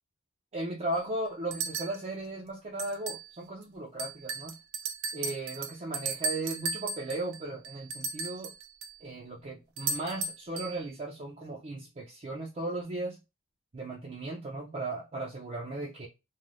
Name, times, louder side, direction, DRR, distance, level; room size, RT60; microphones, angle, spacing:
voice 1, 0.5-4.5 5.1-8.5 9.0-13.2 13.7-16.1, right 2 dB, 30° right, 0.5 m, -36 dB
sound 1, 0.9-1.0 1.5-2.0 2.8-3.3 3.6-3.7 4.0-9.0 9.8-10.8, right 4 dB, 85° right, 0.5 m, -36 dB
3.2 x 2.1 x 2.5 m
head